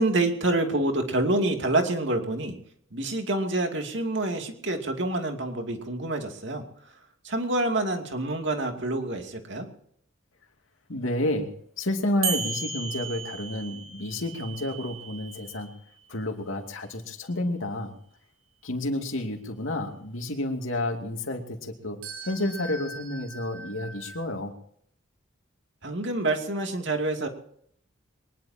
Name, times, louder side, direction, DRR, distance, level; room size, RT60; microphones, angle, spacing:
voice 1, 0.0-2.6 2.9-6.6 7.2-9.7 25.8-27.3, right 2 dB, 60° right, 4 dB, 2.6 m, -27 dB
voice 2, 10.9-11.5 11.8-15.7 16.1-18.0 18.6-22.0 22.2-24.5, left 1 dB, 80° left, 4 dB, 2.6 m, -30 dB
sound 1, 12.2-16.1 22.0-24.2, right 5 dB, 80° right, 5.2 m, -36 dB
23.0 x 20.5 x 2.9 m, 0.65 s
head